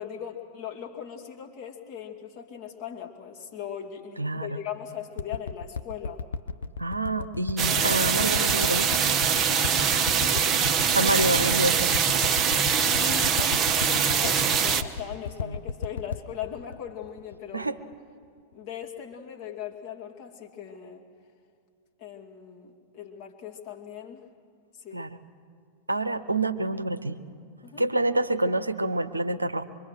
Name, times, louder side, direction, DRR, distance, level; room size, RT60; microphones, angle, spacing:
voice 1, 0.0-6.2 10.1-10.5 12.8-17.7 18.5-21.1 22.0-24.2 24.7-25.0 27.6-27.8, left 9 dB, 45° left, 0 dB, 2.5 m, -39 dB
voice 2, 4.2-4.6 6.8-8.9 10.9-11.9 15.4-15.6 17.5-17.8 24.9-25.1 25.9-27.2 27.8-29.6, right 2 dB, 85° right, 11 dB, 0.7 m, -27 dB
sound 1, 5.2-17.9 18.5-18.6, left 5 dB, 65° left, 0.6 m, -35 dB
sound 2, 7.6-14.8, right 7 dB, 25° right, 1.0 m, -23 dB
25.0 x 23.5 x 6.5 m, 2.2 s
figure-of-eight pair, 90°, 0 cm